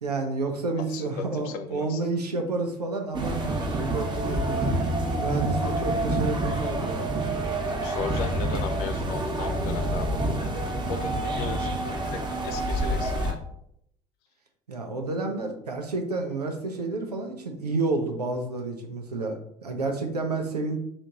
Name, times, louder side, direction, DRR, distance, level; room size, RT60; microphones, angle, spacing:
voice 1, 0.0-4.6 5.2-7.1 14.7-20.8, right 3 dB, 85° right, 3 dB, 0.7 m, -30 dB
voice 2, 0.8-2.1 7.7-13.4, left 6 dB, 55° left, 7 dB, 0.6 m, -37 dB
sound 1, 3.1-13.3, right 1 dB, 25° right, 1.0 m, -27 dB
4.1 x 3.1 x 3.8 m, 0.72 s
figure-of-eight pair, 60°, 20 cm